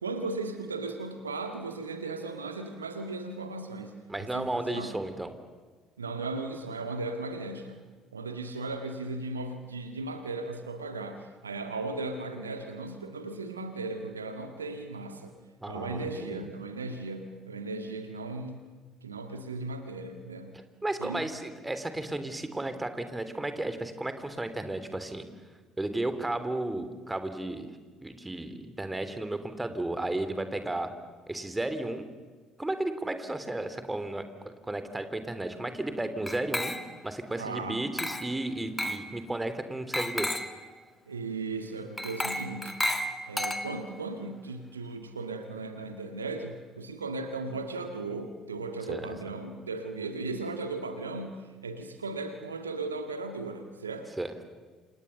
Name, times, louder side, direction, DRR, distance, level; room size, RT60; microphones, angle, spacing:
voice 1, 0.0-3.9 4.2-4.9 6.0-7.8 8.1-15.3 15.7-18.6 19.0-20.6 21.0-21.2 37.4-37.8 41.1-42.8 43.2-54.1, right 3 dB, 80° right, 7 dB, 1.7 m, -36 dB
voice 2, 4.1-5.3 15.6-16.4 20.8-25.2 25.8-27.7 28.0-30.9 31.3-32.1 32.6-36.8 37.0-40.3 48.9-49.1 54.2-54.3, right 2 dB, 10° right, 10 dB, 3.2 m, -33 dB
Glass, 36.3-37.1 38.0-38.4 38.8-39.1 39.9-40.6 42.0-44.0, left 1 dB, 10° left, 2.4 m, -32 dB
29.5 x 27.5 x 7.0 m, 1.4 s
figure-of-eight pair, 55°, 0 cm